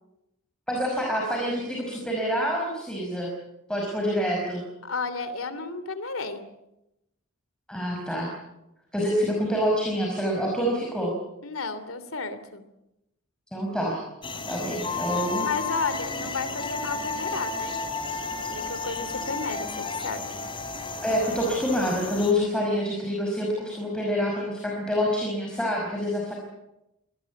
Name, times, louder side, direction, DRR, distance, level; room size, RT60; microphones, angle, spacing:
voice 1, 0.7-3.3 3.7-4.6 7.7-8.3 8.9-11.1 13.5-14.0 14.5-15.5 21.0-26.3, equal, 5° left, -1 dB, 5.4 m, -27 dB
voice 2, 4.8-6.4 11.4-12.6 15.4-17.8 18.5-20.4, left 4 dB, 75° left, 12 dB, 2.9 m, -33 dB
sound 1, 14.2-22.3, left 4 dB, 25° left, 3.3 m, -32 dB
25.5 x 19.0 x 8.4 m, 0.90 s
head